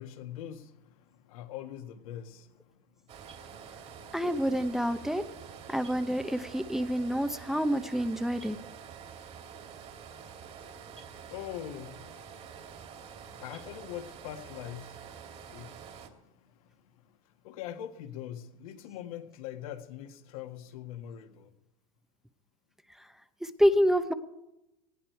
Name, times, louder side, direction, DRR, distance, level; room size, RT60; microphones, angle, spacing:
voice 1, 0.0-2.8 3.1-3.2 3.5-3.6 10.8-17.1 17.4-21.5, left 11 dB, 70° left, 1.8 m, -44 dB
sound 1, 3.1-16.1, right 7 dB, 35° right, 2.4 m, -47 dB
voice 2, 4.1-5.2 5.7-8.6 23.4-24.1, equal, ahead, 0.8 m, -27 dB
19.0 x 15.0 x 4.6 m
supercardioid pair, 135°, 18 cm